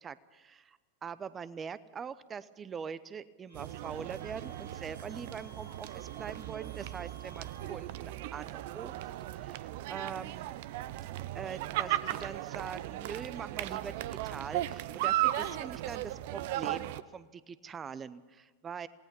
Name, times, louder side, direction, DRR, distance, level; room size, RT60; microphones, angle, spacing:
voice 1, 0.0-8.9 9.3-10.6 11.3-18.9, right 6 dB, 20° right, 17 dB, 0.8 m, -43 dB
Wind instrument woodwind instrument, 3.5-7.8, right 1 dB, 90° left, 3.7 m, -56 dB
sound 1, 3.5-17.0, right 14 dB, 50° right, 0.7 m, -36 dB
27.5 x 18.5 x 5.5 m, 1.3 s
figure-of-eight pair, 90°, 0 cm